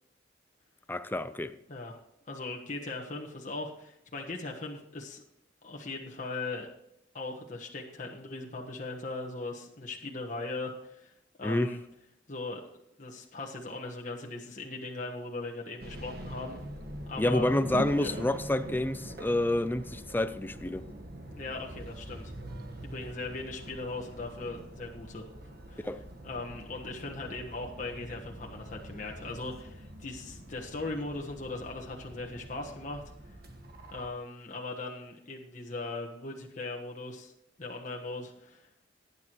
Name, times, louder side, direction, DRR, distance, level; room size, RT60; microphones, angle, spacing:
voice 1, 0.9-1.5 11.4-11.7 17.2-20.9 25.8-26.0, left 1 dB, 10° left, 0.5 m, -28 dB
voice 2, 2.3-5.2 5.6-6.7 7.1-11.1 11.4-11.8 12.3-12.6 13.0-16.6 17.1-17.5 18.0-18.1 21.4-22.3 22.8-25.3 25.7-25.9 26.2-33.0 33.9-37.3 37.6-38.7, left 2 dB, 45° left, 1.3 m, -39 dB
sound 1, 15.8-34.1, equal, 55° right, 1.4 m, -44 dB
18.5 x 9.6 x 3.0 m
head